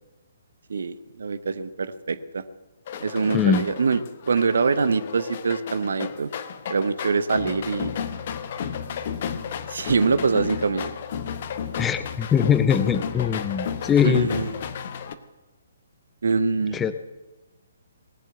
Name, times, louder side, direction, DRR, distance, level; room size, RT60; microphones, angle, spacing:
voice 1, 0.7-2.4 3.0-4.0 4.3-6.3 6.7-7.9 9.7-10.9 14.0-14.5 16.2-16.8, right 4 dB, 60° right, 13 dB, 0.8 m, -24 dB
sound 1, 2.9-15.1, left 7 dB, 45° left, 0.9 m, -33 dB
voice 2, 3.3-3.6 11.8-14.3 16.7-16.9, left 7 dB, 10° left, 11 dB, 0.7 m, -21 dB
18.5 x 7.5 x 7.7 m, 1.1 s
figure-of-eight pair, 130°, 0 cm